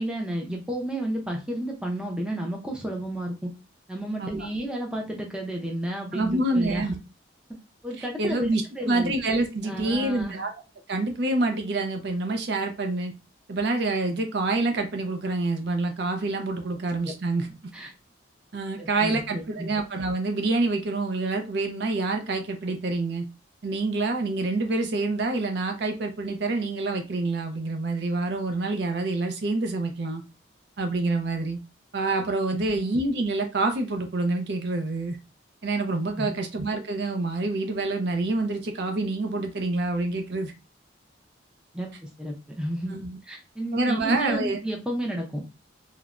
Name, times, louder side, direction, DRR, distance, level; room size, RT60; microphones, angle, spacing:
voice 1, 0.0-3.5 3.9-7.0 7.8-8.5 8.8-9.1 9.6-10.4 17.1-17.2 17.7-17.9 18.8-19.7 32.5-32.8 36.2-36.3 41.7-43.0 43.2-45.4, right 1 dB, 5° right, 0 dB, 0.5 m, -32 dB
voice 2, 6.1-6.9 8.2-10.5 10.9-13.1 13.5-17.5 18.5-23.2 23.6-30.2 30.8-31.6 31.9-35.2 35.6-40.5 42.9-43.2 43.7-44.6, right 2 dB, 60° right, 4 dB, 0.5 m, -27 dB
3.1 x 2.0 x 2.4 m, 0.28 s
head